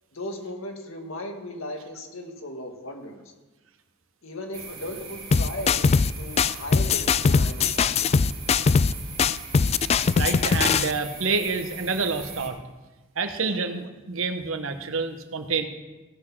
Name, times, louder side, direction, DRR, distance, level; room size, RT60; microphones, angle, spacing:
voice 1, 0.1-3.2 4.2-5.9 6.2-8.3 13.4-13.7, left 1 dB, 80° left, 3 dB, 1.9 m, -37 dB
sound 1, 4.5-12.5, right 5 dB, 30° right, 2.5 m, -41 dB
sound 2, 5.3-6.1 6.4-8.9 9.2-10.9, left 5 dB, 30° left, 0.3 m, -21 dB
voice 2, 10.1-12.6 13.2-15.6, right 4 dB, 75° right, 7 dB, 1.2 m, -28 dB
17.0 x 6.2 x 6.1 m, 1.2 s
head